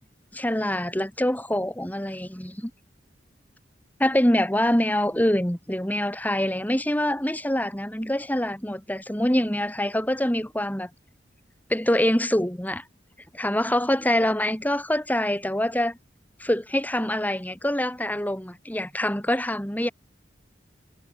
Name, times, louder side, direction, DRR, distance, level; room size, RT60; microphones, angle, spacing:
voice 1, 0.3-2.7 4.0-10.9 11.7-12.8 13.3-16.0 16.4-19.9, left 1 dB, 10° left, 3.6 m, -25 dB
head